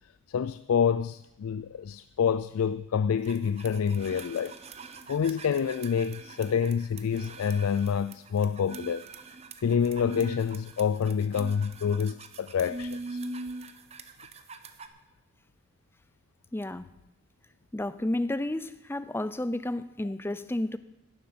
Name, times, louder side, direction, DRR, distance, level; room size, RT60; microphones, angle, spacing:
voice 1, 0.3-4.6 5.1-9.0 9.6-13.2, left 7 dB, 90° left, 0.4 m, -27 dB
sound 1, 3.2-14.9, right 3 dB, 30° right, 0.8 m, -42 dB
voice 2, 16.5-16.9 17.7-20.8, left 1 dB, 10° left, 0.4 m, -31 dB
11.5 x 7.8 x 9.4 m
head